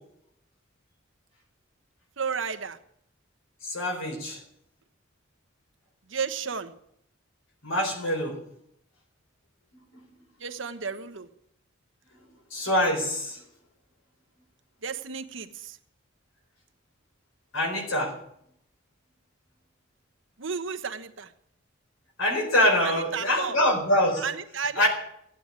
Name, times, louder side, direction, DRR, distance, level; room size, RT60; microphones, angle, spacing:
voice 1, 2.2-2.8 6.1-6.7 10.4-11.3 14.8-15.8 20.4-21.3 22.8-23.6 24.2-24.8, right 6 dB, 70° right, 9 dB, 1.2 m, -33 dB
voice 2, 3.6-4.4 7.6-8.4 12.5-13.4 17.5-18.1 22.2-24.2 24.8-24.9, left 1 dB, 85° left, 3 dB, 4.4 m, -24 dB
15.0 x 9.2 x 9.7 m, 0.74 s
head